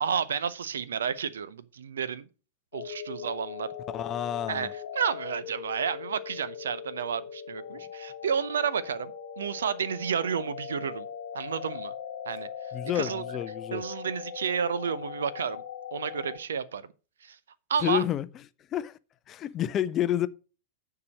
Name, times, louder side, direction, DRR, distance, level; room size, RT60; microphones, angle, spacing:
voice 1, 0.0-2.2 2.7-3.7 4.5-11.1 11.3-11.9 12.3-12.5 12.9-13.2 13.7-15.6 15.9-16.8 17.2-17.4 17.7-18.0, right 7 dB, 65° right, 0.7 m, -31 dB
sound 1, 2.7-16.4, left 8 dB, 60° left, 1.0 m, -40 dB
voice 2, 3.9-4.7 12.7-13.8 17.8-18.3 18.7-19.0 19.3-20.3, left 11 dB, 30° left, 0.5 m, -29 dB
9.6 x 4.8 x 6.4 m
figure-of-eight pair, 90°, 0 cm